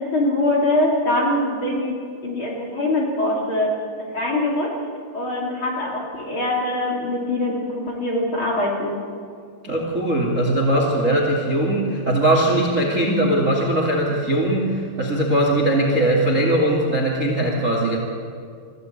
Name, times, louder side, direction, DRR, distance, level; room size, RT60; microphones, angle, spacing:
voice 1, 0.0-1.9 2.2-4.7 5.1-9.0, left 1 dB, 35° left, -2 dB, 2.6 m, -23 dB
voice 2, 9.6-18.0, right 1 dB, 55° right, 0 dB, 0.8 m, -20 dB
22.5 x 15.0 x 8.7 m, 2.2 s
omnidirectional pair, 5.9 m